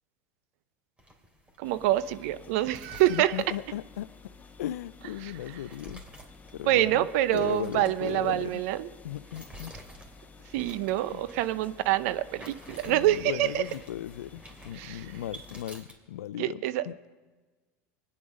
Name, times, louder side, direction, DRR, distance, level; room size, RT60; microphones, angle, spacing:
sound 1, 1.0-16.0, right 1 dB, 15° right, 2.7 m, -51 dB
sound 2, 1.6-15.6, left 4 dB, 20° left, 1.5 m, -52 dB
voice 1, 1.6-3.4 5.2-5.3 6.6-8.9 10.5-13.6 14.7-15.1 16.4-16.8, right 14 dB, 70° right, 14 dB, 0.7 m, -26 dB
voice 2, 3.1-4.1 4.6-6.0 6.5-7.1 7.3-8.6 9.0-9.7 11.1-11.2 12.8-17.0, left 12 dB, 85° left, 19 dB, 0.4 m, -37 dB
24.0 x 10.0 x 5.3 m, 1.3 s
hypercardioid pair, 85°, 8 cm